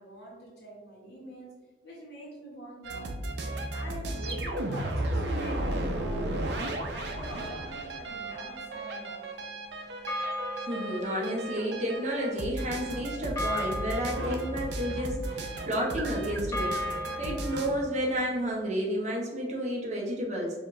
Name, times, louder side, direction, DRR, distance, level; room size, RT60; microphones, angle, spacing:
voice 1, 0.0-1.5 1.8-3.2 3.4-9.4, right 1 dB, 65° left, -2 dB, 1.3 m, -44 dB
sound 1, 2.8-17.7, right 1 dB, 70° right, 0.6 m, -34 dB
sound 2, 8.2-9.6 10.1-18.7, equal, 20° left, 0.4 m, -38 dB
voice 2, 10.6-16.8 17.2-20.5, equal, 40° right, -2 dB, 0.9 m, -31 dB
4.9 x 2.6 x 3.1 m, 1.2 s
head